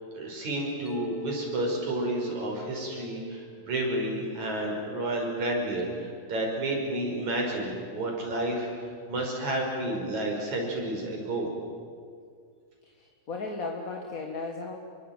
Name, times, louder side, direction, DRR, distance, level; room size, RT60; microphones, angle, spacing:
voice 1, 0.0-8.7 9.1-11.5, right 1 dB, 75° right, 0 dB, 7.0 m, -31 dB
Mallet percussion, 0.8-5.0, right 1 dB, 10° left, 0.6 m, -42 dB
voice 2, 13.0-14.7, left 3 dB, 35° left, 2 dB, 1.7 m, -35 dB
28.0 x 23.0 x 9.1 m, 2.1 s
omnidirectional pair, 3.3 m